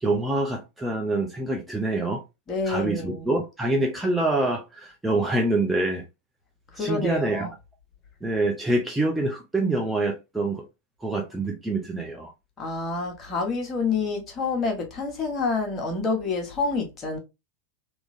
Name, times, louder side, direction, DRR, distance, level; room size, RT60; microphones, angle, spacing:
voice 1, 0.0-2.2 2.7-6.0 6.8-7.5 8.2-10.6 11.0-12.3, right 2 dB, 5° right, 0.7 m, -26 dB
voice 2, 2.5-3.3 6.7-7.5 12.6-17.2, left 4 dB, 25° left, 1.3 m, -28 dB
3.7 x 3.0 x 2.6 m
figure-of-eight pair, 90°, 0 cm